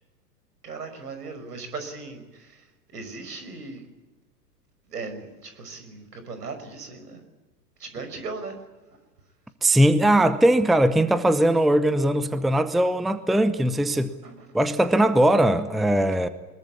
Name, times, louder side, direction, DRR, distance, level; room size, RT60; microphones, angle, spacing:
voice 1, 0.6-2.6 2.9-3.8 4.9-7.2 7.8-8.6 14.2-14.3, right 4 dB, 75° right, 8 dB, 5.7 m, -37 dB
voice 2, 9.6-14.1 14.5-16.3, right 1 dB, ahead, 13 dB, 0.8 m, -20 dB
23.5 x 21.5 x 8.6 m, 1.2 s
figure-of-eight pair, 100°, 48 cm